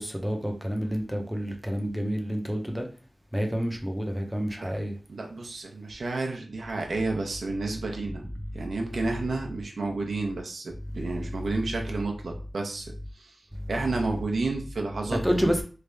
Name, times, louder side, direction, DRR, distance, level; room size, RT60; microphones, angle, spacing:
voice 1, 0.0-2.9 3.3-4.9 15.1-15.6, equal, 5° right, 0.6 m, -28 dB
voice 2, 4.6-8.3 8.5-13.4 13.7-15.4, right 3 dB, 80° right, 0.7 m, -31 dB
3.3 x 2.5 x 3.3 m
wide cardioid pair, 90°, 0 cm